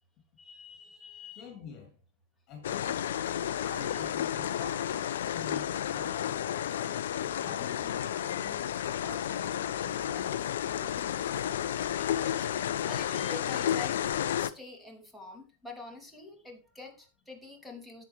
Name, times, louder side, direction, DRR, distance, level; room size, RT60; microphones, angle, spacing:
voice 1, 0.4-1.5 5.5-5.6 12.0-18.0, left 3 dB, 5° left, 2.8 m, -47 dB
voice 2, 1.4-1.9 2.5-3.1 3.6-5.0 5.3-6.6 7.4-8.7 9.0-11.2, left 4 dB, 35° left, 3.3 m, -47 dB
sound 1, 2.6-14.5, left 10 dB, 60° left, 0.5 m, -32 dB
10.5 x 8.3 x 3.2 m
figure-of-eight pair, 90°, 0 cm